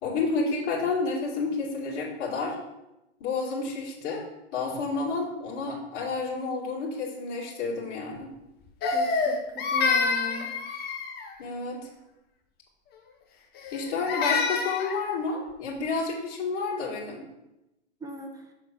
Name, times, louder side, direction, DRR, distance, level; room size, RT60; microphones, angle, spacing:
voice 1, 0.0-2.6 3.2-4.2 4.5-8.3 11.4-11.9 13.7-17.2, left 4 dB, 45° left, -5 dB, 2.2 m, -30 dB
Crying sobbing, 8.8-11.3 13.6-15.0, left 4 dB, 30° left, 1.1 m, -27 dB
voice 2, 8.9-10.5 18.0-18.4, equal, 10° right, 3 dB, 0.8 m, -38 dB
6.1 x 3.8 x 5.8 m, 0.94 s
hypercardioid pair, 110°, 35 cm